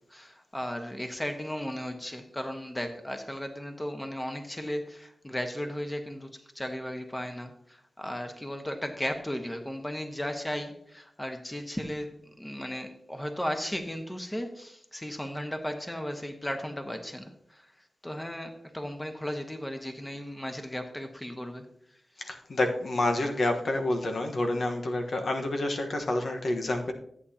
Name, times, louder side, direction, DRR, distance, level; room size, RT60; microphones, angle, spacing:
voice 1, 0.1-17.7 18.0-21.7, equal, 10° left, 5 dB, 1.2 m, -35 dB
voice 2, 22.2-26.9, left 2 dB, 60° left, 3 dB, 1.2 m, -28 dB
14.0 x 8.5 x 2.9 m, 0.70 s
cardioid pair, 75°, 0 cm